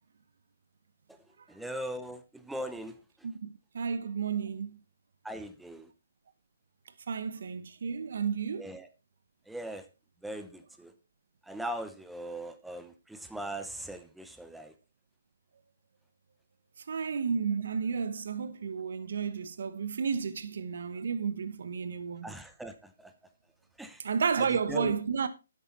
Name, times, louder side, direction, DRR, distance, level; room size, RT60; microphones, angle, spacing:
voice 1, 1.5-2.9 5.2-5.9 8.6-8.9 9.5-9.8 10.2-10.9 11.5-14.7 22.2-23.1 23.8-24.0 24.4-24.9, right 1 dB, 5° right, 0.9 m, -40 dB
voice 2, 3.2-4.8 7.1-8.7 16.9-22.3 24.0-25.3, right 6 dB, 65° right, 0.9 m, -32 dB
10.5 x 8.5 x 4.2 m
hypercardioid pair, 140°, 0 cm